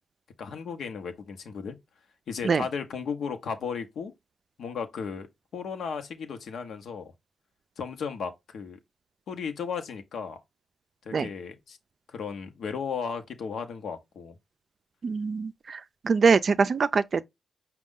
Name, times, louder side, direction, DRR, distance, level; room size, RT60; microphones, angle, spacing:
voice 1, 0.4-1.8 2.3-4.1 4.6-5.3 5.5-7.1 7.8-8.8 9.3-10.4 11.1-11.8 12.1-14.3, left 6 dB, 75° left, 0.8 m, -35 dB
voice 2, 15.0-15.8 16.0-17.2, right 5 dB, 55° right, 0.4 m, -23 dB
5.2 x 2.3 x 3.7 m
cardioid pair, 60°, 0 cm